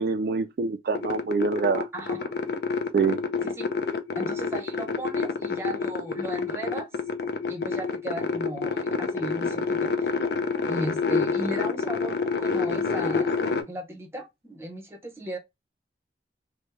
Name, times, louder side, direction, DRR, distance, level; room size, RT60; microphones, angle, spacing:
voice 1, 0.0-1.9 2.9-3.2, right 4 dB, 60° right, 0.3 m, -25 dB
sound 1, 0.9-13.6, left 4 dB, 65° left, 0.4 m, -28 dB
voice 2, 1.9-2.3 3.4-3.7 4.2-6.9 7.5-10.1 10.6-13.4 13.7-15.4, right 1 dB, 15° right, 0.6 m, -36 dB
3.3 x 2.0 x 3.2 m
head